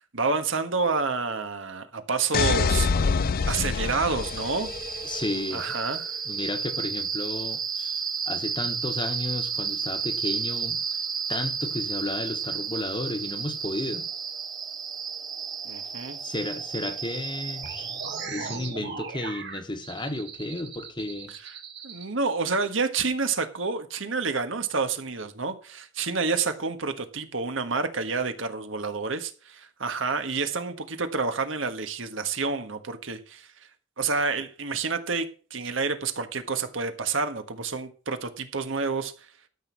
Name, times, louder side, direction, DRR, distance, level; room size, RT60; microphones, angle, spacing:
voice 1, 0.1-4.7 5.5-6.2 15.6-16.2 21.3-21.5 21.8-33.5 34.0-39.1, right 4 dB, 80° right, 1.5 m, -29 dB
sound 1, 2.3-5.2, left 5 dB, 50° left, 0.4 m, -26 dB
sound 2, 4.2-18.3, right 6 dB, 20° right, 0.7 m, -32 dB
voice 2, 5.0-5.7 6.3-10.8 11.3-14.1 16.2-17.9 18.3-21.3, left 1 dB, 25° left, 1.3 m, -33 dB
sound 3, 17.6-22.0, right 5 dB, 60° right, 2.1 m, -38 dB
13.0 x 6.3 x 6.2 m
head